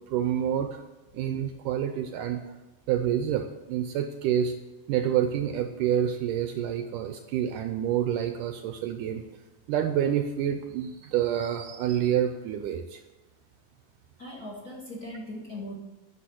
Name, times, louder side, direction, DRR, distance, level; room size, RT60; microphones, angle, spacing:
voice 1, 0.1-0.8 1.1-2.4 2.9-4.5 4.9-9.2 9.7-13.0, right 10 dB, 80° right, 6 dB, 2.0 m, -28 dB
voice 2, 14.2-15.8, left 1 dB, 35° left, -3 dB, 1.7 m, -39 dB
10.0 x 6.5 x 8.5 m, 1.1 s
omnidirectional pair, 4.2 m